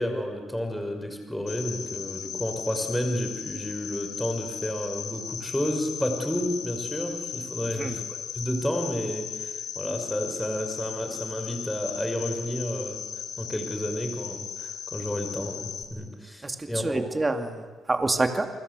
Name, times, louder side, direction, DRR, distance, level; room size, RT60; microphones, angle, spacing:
voice 1, 0.0-8.0 8.3-13.0 13.4-17.1, equal, 5° left, 5 dB, 5.6 m, -31 dB
Cricket, 1.5-15.8, left 8 dB, 75° left, 4.0 m, -37 dB
voice 2, 7.6-8.0 16.4-18.5, right 2 dB, 20° right, 6 dB, 2.5 m, -27 dB
29.5 x 24.0 x 8.3 m, 1.4 s
cardioid pair, 90°, 0 cm